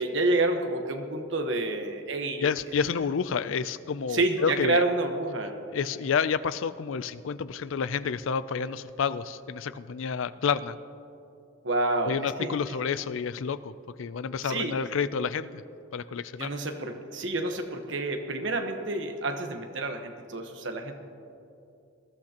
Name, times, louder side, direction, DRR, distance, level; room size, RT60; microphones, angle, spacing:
voice 1, 0.0-2.4 4.1-5.5 11.6-12.6 14.4-14.8 16.4-20.9, right 2 dB, 70° right, 5 dB, 1.1 m, -28 dB
voice 2, 2.4-4.8 5.7-10.8 12.1-15.6 15.9-16.5, left 6 dB, 80° left, 15 dB, 0.4 m, -29 dB
20.5 x 13.5 x 2.9 m, 2.6 s
head